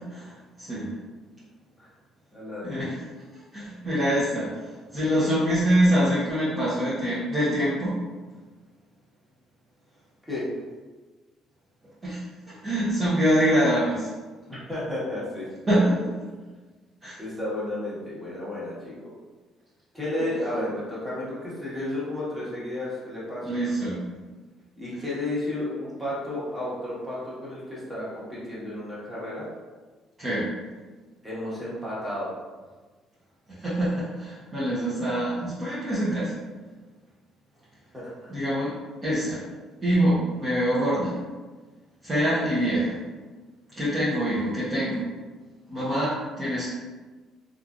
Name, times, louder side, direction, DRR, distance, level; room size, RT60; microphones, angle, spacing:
voice 1, 0.6-0.9 2.6-2.9 3.5-4.5 4.9-8.0 12.0-12.2 12.5-14.1 15.7-15.9 17.0-17.2 23.4-24.1 30.2-30.5 33.5-36.3 38.3-38.7 39.0-39.4 39.8-41.2 42.0-43.0 43.8-45.0 45.7-46.7, equal, 30° right, -11 dB, 0.9 m, -24 dB
voice 2, 2.3-2.8 10.3-10.5 14.5-15.5 15.7-15.9 17.2-19.1 19.9-23.6 24.8-29.5 31.2-32.3 37.9-38.3, left 1 dB, 10° right, -9 dB, 1.3 m, -32 dB
3.1 x 2.5 x 2.4 m, 1.3 s
cardioid pair, 110°, 0 cm